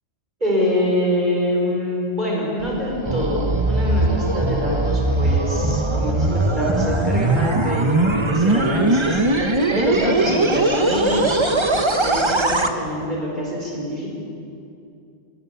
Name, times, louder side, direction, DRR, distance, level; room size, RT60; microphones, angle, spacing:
voice 1, 0.4-9.2 9.7-11.4 12.0-14.1, left 1 dB, 40° right, -3 dB, 5.2 m, -25 dB
sound 1, 2.6-12.7, right 2 dB, 25° right, 1.1 m, -20 dB
27.0 x 19.0 x 7.2 m, 2.6 s
omnidirectional pair, 1.2 m